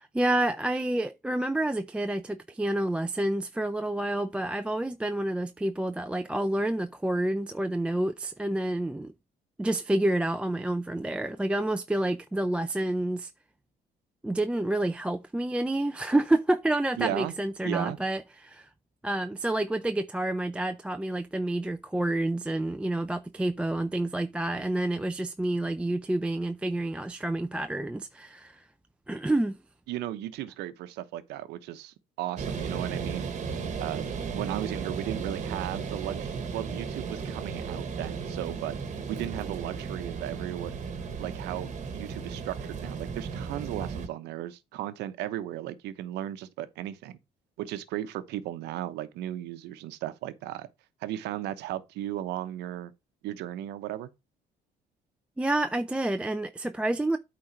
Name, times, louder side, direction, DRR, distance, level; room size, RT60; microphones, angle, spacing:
voice 1, 0.0-9.1 9.6-13.3 14.2-18.7 19.0-28.6 29.1-29.6 55.4-57.2, right 1 dB, 5° right, 0.4 m, -29 dB
voice 2, 17.0-17.3 17.6-18.0 29.9-33.3 33.8-38.8 39.1-40.7 41.2-47.2 47.6-50.7 51.0-52.9 53.2-54.1, right 13 dB, 85° right, 0.9 m, -35 dB
sound 1, 32.4-44.1, right 5 dB, 45° right, 1.4 m, -35 dB
8.8 x 3.9 x 4.4 m
cardioid pair, 110°, 17 cm